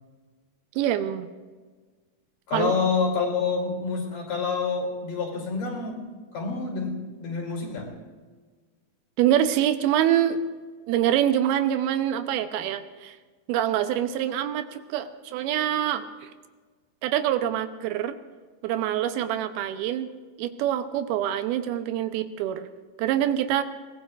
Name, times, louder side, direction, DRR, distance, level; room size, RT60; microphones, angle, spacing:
voice 1, 0.8-1.3 2.5-2.8 9.2-10.4 10.9-13.2 13.5-16.3 17.0-18.2 18.6-20.1 20.4-22.7 23.0-23.6, right 11 dB, 85° right, 9 dB, 2.7 m, -25 dB
voice 2, 2.5-7.9, left 4 dB, 60° left, 1 dB, 4.5 m, -28 dB
24.0 x 18.5 x 2.5 m, 1.4 s
omnidirectional pair, 4.3 m